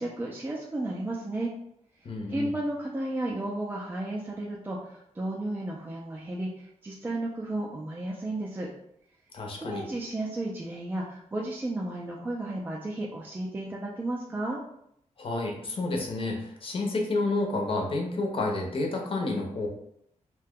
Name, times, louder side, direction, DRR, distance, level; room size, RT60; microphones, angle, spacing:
voice 1, 0.0-1.5 2.3-8.7 9.6-14.6, right 1 dB, 15° right, -2 dB, 0.3 m, -33 dB
voice 2, 2.0-2.5 9.3-9.9 15.2-19.7, left 2 dB, 45° left, 1 dB, 0.6 m, -30 dB
2.7 x 2.2 x 3.6 m, 0.73 s
wide cardioid pair, 160°, 13 cm